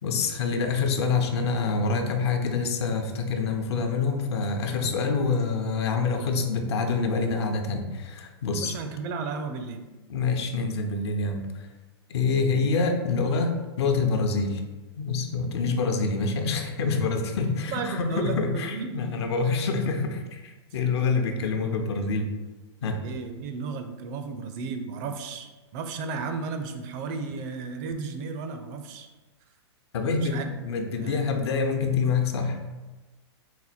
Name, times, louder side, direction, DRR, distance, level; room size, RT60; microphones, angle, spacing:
voice 1, 0.0-8.7 10.1-11.7 12.1-14.6 15.0-22.3 22.8-23.0 29.9-30.4 30.6-32.6, left 4 dB, 70° left, 5 dB, 0.6 m, -26 dB
voice 2, 8.5-9.8 17.7-18.9 22.8-29.1 30.2-30.4 31.0-31.2, right 4 dB, 40° right, 6 dB, 0.4 m, -34 dB
4.2 x 2.2 x 4.1 m, 1.2 s
hypercardioid pair, 120°, 15 cm